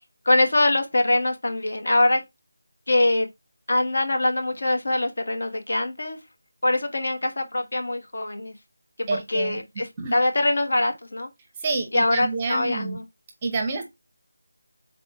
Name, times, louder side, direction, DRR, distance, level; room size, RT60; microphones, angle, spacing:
voice 1, 0.2-2.2 2.9-3.3 3.7-6.2 6.6-8.5 9.0-11.3 11.9-13.0, left 2 dB, 65° left, 1.2 m, -23 dB
voice 2, 9.1-9.6 10.0-10.1 11.6-13.0 13.4-13.8, right 3 dB, 15° right, 0.6 m, -28 dB
3.8 x 2.7 x 4.7 m
figure-of-eight pair, 175°, 0 cm